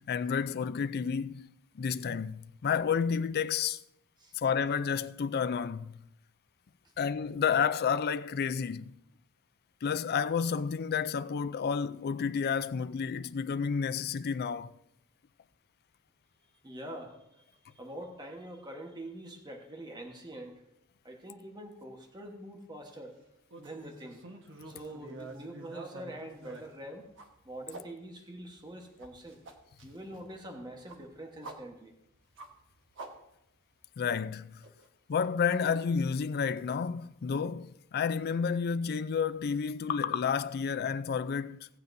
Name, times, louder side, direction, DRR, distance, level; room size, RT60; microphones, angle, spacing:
voice 1, 0.0-1.5 1.7-3.8 4.3-6.1 7.0-9.0 9.8-14.7 34.0-34.6 35.1-41.7, left 6 dB, 45° left, 0.4 m, -30 dB
voice 2, 16.6-20.6 21.0-23.2 23.6-24.2 24.6-27.1 27.4-29.4 29.8-31.9, right 1 dB, 20° right, 1.2 m, -45 dB
sound 1, 23.5-27.8 28.4-33.7 34.1-34.2 34.6-34.9 35.7-36.4 36.7-36.8 37.3-37.4 38.7-38.8, right 2 dB, 60° right, 1.3 m, -49 dB
17.5 x 8.3 x 2.6 m
head